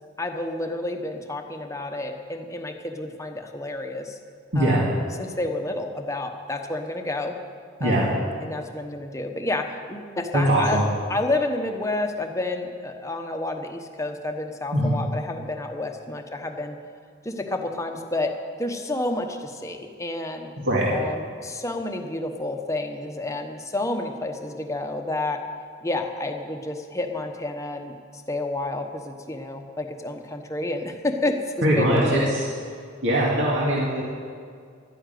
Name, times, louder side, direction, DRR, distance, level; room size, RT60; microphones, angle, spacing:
voice 1, 0.2-4.2 4.6-4.9 5.2-7.4 7.8-10.8 11.1-16.8 17.2-20.5 20.9-25.4 25.8-32.4, left 2 dB, 15° left, 4 dB, 1.0 m, -30 dB
voice 2, 4.5-4.8 7.8-8.0 10.3-10.8 14.7-14.9 20.6-20.9 31.6-32.5 33.0-34.0, right 1 dB, 65° right, -5 dB, 2.2 m, -21 dB
12.5 x 10.0 x 9.3 m, 2.2 s
head